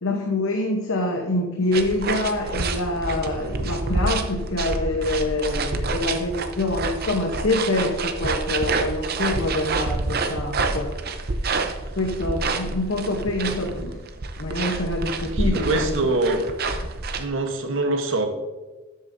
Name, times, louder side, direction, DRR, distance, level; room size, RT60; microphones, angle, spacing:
voice 1, 0.0-10.9 11.9-14.0 14.4-16.0, left 2 dB, 65° left, 2 dB, 0.9 m, -26 dB
sound 1, 1.7-17.3, right 3 dB, 45° right, 0.6 m, -28 dB
voice 2, 15.3-16.4 17.2-18.3, right 2 dB, 60° right, 5 dB, 1.0 m, -24 dB
12.5 x 8.0 x 2.6 m, 1.2 s
head